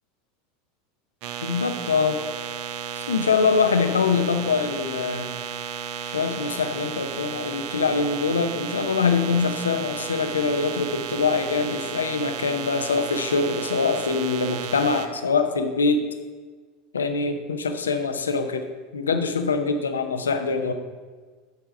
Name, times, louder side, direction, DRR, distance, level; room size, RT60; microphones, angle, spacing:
sound 1, 1.2-15.1, right 9 dB, 55° right, 0.6 m, -33 dB
voice 1, 1.4-2.2 3.0-5.3 6.0-16.0 16.9-18.7 18.9-20.7, left 5 dB, 75° left, 7 dB, 0.7 m, -24 dB
9.6 x 4.7 x 5.1 m, 1.4 s
figure-of-eight pair, 80°, 0 cm